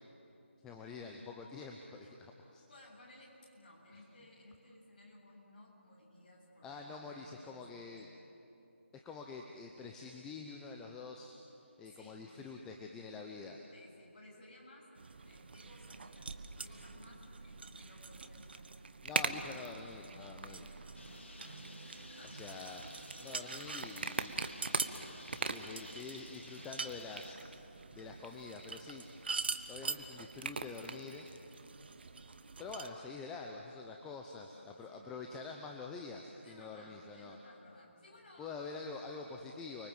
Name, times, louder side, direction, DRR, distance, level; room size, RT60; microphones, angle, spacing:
voice 1, 0.6-2.6 3.9-4.0 6.6-8.1 8.9-13.6 19.0-20.7 22.3-22.8 23.2-24.3 25.4-27.4 27.9-29.0 29.7-31.3 32.6-37.4 38.4-39.9, left 4 dB, 10° left, 2 dB, 0.8 m, -46 dB
voice 2, 2.7-7.9 11.8-12.3 13.7-14.9 15.3-18.7 22.0-22.9 34.9-35.2 36.4-38.6 38.9-39.1, left 1 dB, 40° left, -3 dB, 7.9 m, -58 dB
sound 1, 15.0-32.9, right 4 dB, 50° right, 1.4 m, -42 dB
Bird, 20.9-27.3, left 2 dB, 70° left, 3.2 m, -53 dB
30.0 x 23.0 x 7.7 m, 2.9 s
figure-of-eight pair, 160°, 7 cm